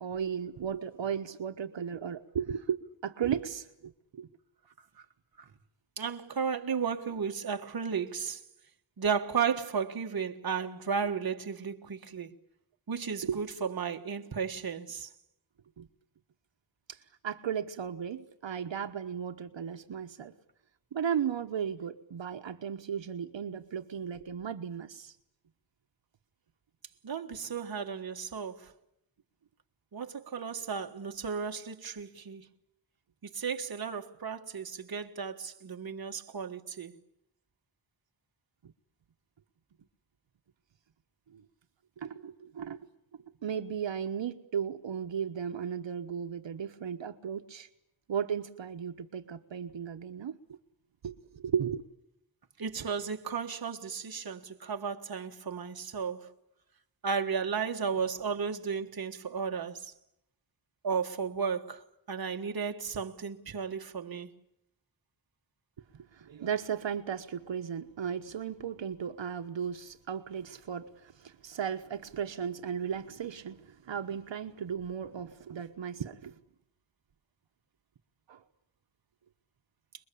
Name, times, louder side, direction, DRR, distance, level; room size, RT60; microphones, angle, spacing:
voice 1, 0.0-4.3 13.3-13.4 15.8-15.9 16.9-20.3 20.9-25.2 38.6-38.7 41.3-41.4 42.0-42.8 43.4-47.7 48.1-50.6 51.0-51.9 65.9-76.3 78.3-78.4, right 8 dB, 75° right, 1.2 m, -35 dB
voice 2, 6.0-8.4 9.0-12.3 12.9-15.1 27.0-28.7 29.9-32.4 33.2-36.9 52.6-56.3 57.0-59.9 60.8-64.3, right 6 dB, 50° right, 1.5 m, -34 dB
28.5 x 21.5 x 8.5 m
wide cardioid pair, 145°, 45 cm